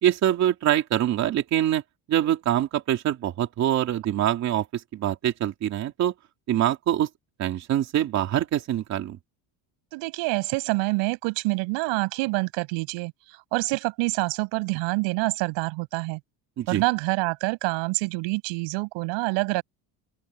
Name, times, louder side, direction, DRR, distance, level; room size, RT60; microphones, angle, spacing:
voice 1, 0.0-1.8 2.1-6.1 6.5-7.1 7.4-9.2 16.6-16.8, right 11 dB, 35° right, 2.8 m, -24 dB
voice 2, 9.9-16.2 16.7-19.6, right 26 dB, 75° right, 5.6 m, -27 dB
open air
cardioid pair, 180°, 45 cm